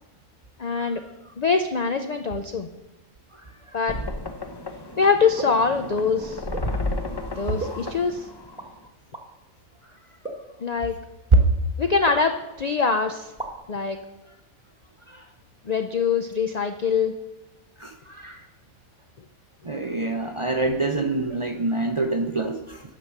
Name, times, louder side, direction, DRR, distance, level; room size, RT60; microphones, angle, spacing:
voice 1, 0.6-1.0 1.4-2.7 3.7-4.0 5.0-6.4 7.3-8.3 10.6-11.0 11.8-13.3 13.7-14.0 15.7-17.1, left 5 dB, 60° left, 7 dB, 0.4 m, -23 dB
sound 1, 3.9-8.9, left 1 dB, 25° left, 0.6 m, -33 dB
sound 2, 5.4-5.7 6.5-6.7 7.6-8.1 8.5-8.7 9.1-9.3 10.2-10.5 11.3-11.5 12.1-12.6 12.9-13.0 13.3-13.8, right 2 dB, 5° right, 1.2 m, -36 dB
voice 2, 17.8-18.4 19.6-22.8, right 2 dB, 35° right, 5 dB, 0.5 m, -24 dB
10.0 x 6.0 x 6.5 m, 1.0 s
omnidirectional pair, 1.4 m